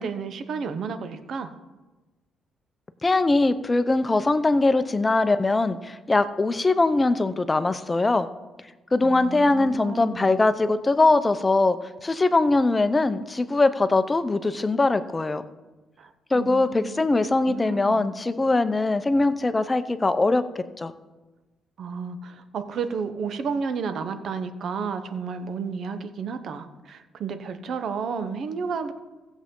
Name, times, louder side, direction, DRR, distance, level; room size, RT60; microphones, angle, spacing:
voice 1, 0.0-1.5 9.0-10.4 16.0-17.1 17.5-18.1 21.8-28.9, right 5 dB, 65° right, 9 dB, 0.9 m, -32 dB
voice 2, 3.0-8.3 8.9-15.4 16.3-20.9, left 2 dB, 20° left, 11 dB, 0.6 m, -22 dB
15.5 x 7.2 x 3.8 m, 1.2 s
cardioid pair, 90°, 0 cm